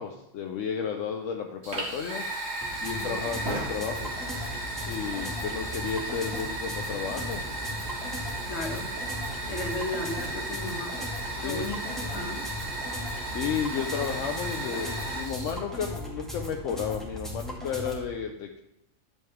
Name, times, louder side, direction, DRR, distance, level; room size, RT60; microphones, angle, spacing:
voice 1, 0.0-2.2 2.8-4.2 4.9-7.4 11.3-11.7 13.2-18.6, left 7 dB, 80° left, 3 dB, 1.1 m, -33 dB
Fire, 1.6-15.5, right 2 dB, 60° right, 2.2 m, -35 dB
sound 1, 2.6-18.0, left 1 dB, ahead, 1.8 m, -38 dB
voice 2, 3.0-3.5 8.5-8.9 9.5-12.5, left 2 dB, 60° left, 2 dB, 1.6 m, -36 dB
11.0 x 6.9 x 3.5 m, 0.84 s
omnidirectional pair, 1.3 m